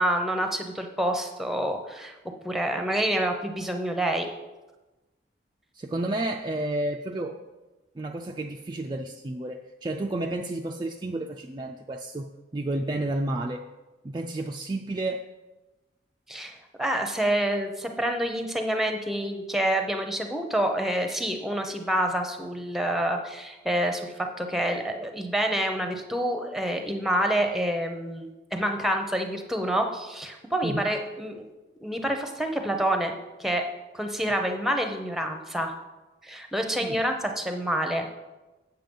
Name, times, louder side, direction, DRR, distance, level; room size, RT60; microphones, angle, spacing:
voice 1, 0.0-2.1 2.4-4.3 16.3-31.4 31.8-33.1 33.4-33.6 33.9-35.7 36.2-38.1, right 1 dB, ahead, 5 dB, 0.7 m, -27 dB
voice 2, 5.7-7.4 8.0-13.6 14.0-15.3 30.6-30.9 36.8-37.0, right 2 dB, 20° right, 2 dB, 0.3 m, -31 dB
7.6 x 7.2 x 5.3 m, 1.1 s
head